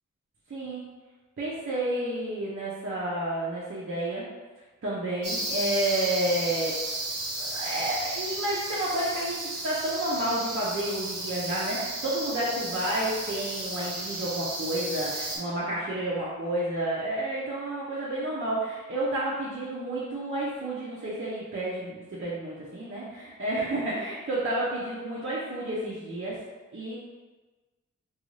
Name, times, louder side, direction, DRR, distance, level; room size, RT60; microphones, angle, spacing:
voice 1, 0.5-0.8 1.4-4.3 4.8-6.8 7.4-26.4 26.7-26.9, right 1 dB, 40° right, -7 dB, 0.6 m, -30 dB
sound 1, 5.2-15.4, right 2 dB, 80° right, 0.7 m, -34 dB
2.5 x 2.3 x 3.1 m, 1.3 s
wide cardioid pair, 60°, 32 cm